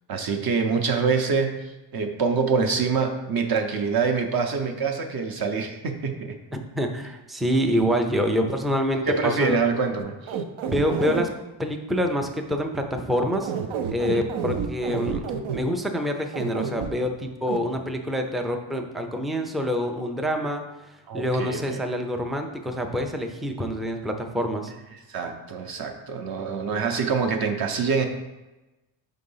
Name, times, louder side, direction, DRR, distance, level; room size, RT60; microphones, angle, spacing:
voice 1, 0.1-6.4 9.1-10.4 14.1-14.3 21.1-21.8 25.1-28.1, right 5 dB, 50° right, 4 dB, 0.7 m, -25 dB
voice 2, 6.5-9.6 10.7-11.3 11.6-13.5 13.9-15.3 15.5-20.6 21.1-24.7, equal, ahead, 4 dB, 0.3 m, -26 dB
sound 1, 10.0-11.3 13.3-15.6 16.3-16.9 17.5-17.6, right 7 dB, 85° right, 0.7 m, -29 dB
5.2 x 3.8 x 5.5 m, 1.1 s
cardioid pair, 150°, 47 cm